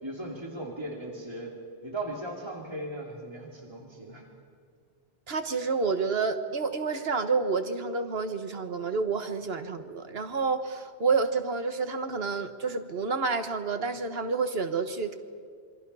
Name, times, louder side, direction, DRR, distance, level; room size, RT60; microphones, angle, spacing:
voice 1, 0.0-4.3, right 1 dB, 25° right, -1 dB, 2.7 m, -38 dB
voice 2, 5.3-15.1, right 4 dB, 70° right, 8 dB, 1.5 m, -29 dB
27.0 x 23.5 x 5.6 m, 2.1 s
omnidirectional pair, 1.1 m